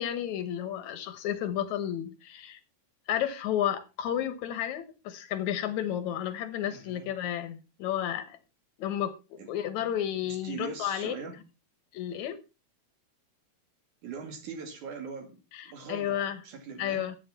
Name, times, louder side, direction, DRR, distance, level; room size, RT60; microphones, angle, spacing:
voice 1, 0.0-2.6 3.1-8.4 8.8-9.1 9.5-11.1 11.9-12.4 15.5-16.4 16.8-17.2, left 10 dB, 80° left, 12 dB, 2.5 m, -32 dB
voice 2, 6.7-7.1 9.4-9.5 10.2-11.4 14.0-15.4 15.6-17.1, right 5 dB, 90° right, 6 dB, 3.8 m, -41 dB
13.0 x 8.6 x 4.2 m, 0.29 s
omnidirectional pair, 3.3 m